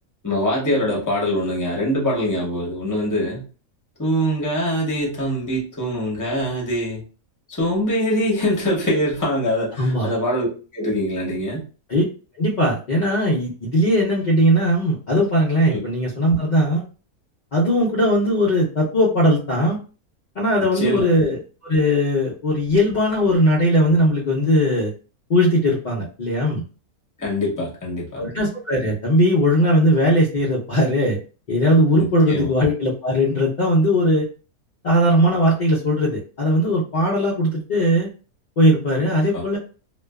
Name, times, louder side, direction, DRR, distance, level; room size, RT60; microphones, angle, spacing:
voice 1, 0.2-3.4 4.0-7.0 7.5-10.5 10.7-11.6 20.7-21.1 27.2-28.2 32.3-32.5 39.3-39.4, equal, 20° left, -3 dB, 0.5 m, -23 dB
voice 2, 9.8-10.1 11.9-12.0 12.4-16.8 17.5-19.8 20.4-24.9 25.3-26.6 28.2-31.2 31.5-34.3 34.8-38.1 38.6-39.6, equal, 70° left, -5 dB, 0.4 m, -19 dB
2.5 x 2.2 x 2.2 m, 0.35 s
omnidirectional pair, 1.6 m